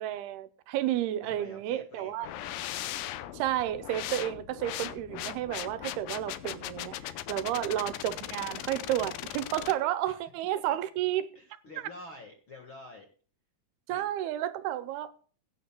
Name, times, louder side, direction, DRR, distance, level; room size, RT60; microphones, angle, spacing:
voice 1, 0.0-2.3 3.3-11.3 13.9-15.1, right 13 dB, 85° right, 2.7 m, -31 dB
voice 2, 1.2-2.6 7.5-7.7 10.1-10.2 11.3-13.1 13.9-14.0, left 1 dB, 50° left, 1.5 m, -48 dB
sound 1, 2.2-9.7, left 13 dB, 75° left, 2.1 m, -39 dB
22.0 x 9.3 x 2.2 m
omnidirectional pair, 4.5 m